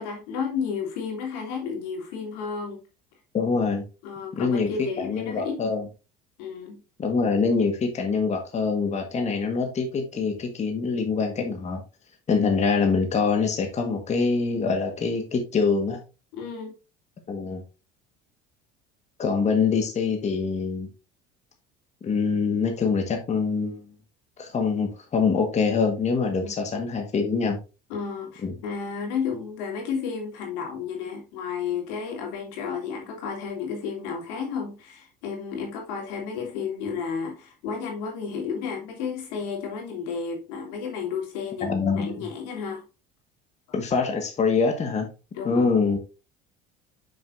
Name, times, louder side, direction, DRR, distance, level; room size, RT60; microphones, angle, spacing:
voice 1, 0.0-2.8 4.0-5.6 6.4-6.8 16.3-16.7 26.4-26.5 27.9-42.8 45.3-45.7, left 6 dB, 85° left, 1 dB, 2.9 m, -32 dB
voice 2, 3.3-3.8 4.3-5.9 7.0-11.8 12.3-16.0 17.3-17.6 19.2-20.9 22.0-23.8 24.4-27.6 28.4-28.5 41.6-42.3 43.7-45.1 45.4-46.0, left 5 dB, 35° left, 4 dB, 1.5 m, -24 dB
7.0 x 6.4 x 2.6 m, 0.30 s
supercardioid pair, 95°, 21 cm